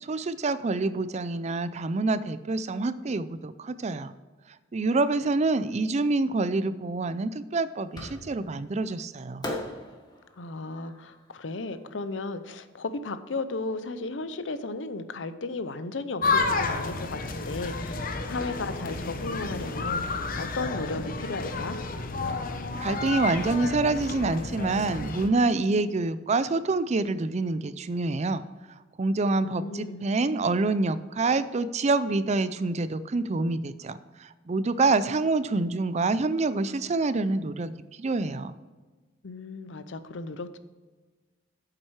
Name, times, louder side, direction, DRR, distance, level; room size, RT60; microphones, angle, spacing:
voice 1, 0.0-4.1 4.7-9.5 22.8-28.4 29.0-37.7 38.0-38.5, right 3 dB, 35° right, 14 dB, 0.4 m, -26 dB
Fireworks, 7.9-8.6 9.4-12.5, left 1 dB, 20° left, 1.6 m, -40 dB
voice 2, 10.4-18.0 18.3-21.8 29.3-30.1 39.2-40.6, left 3 dB, 75° left, 12 dB, 0.7 m, -35 dB
sound 1, 16.2-25.3, left 3 dB, 50° left, 0.8 m, -31 dB
8.9 x 7.6 x 4.7 m, 1.3 s
head